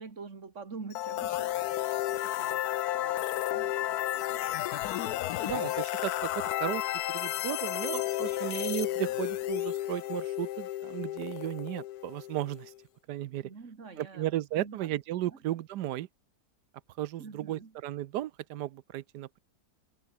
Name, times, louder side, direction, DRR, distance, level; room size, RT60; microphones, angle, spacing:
voice 1, 0.0-2.6 2.9-4.7 13.4-15.0 15.3-15.4 17.2-17.8, right 4 dB, 50° right, 2.6 m, -47 dB
sound 1, 0.9-12.7, left 14 dB, 75° left, 1.1 m, -32 dB
voice 2, 5.4-6.8 7.1-12.7 13.1-13.5 14.0-16.1 17.0-19.4, right 13 dB, 85° right, 1.3 m, -35 dB
omnidirectional pair, 1.7 m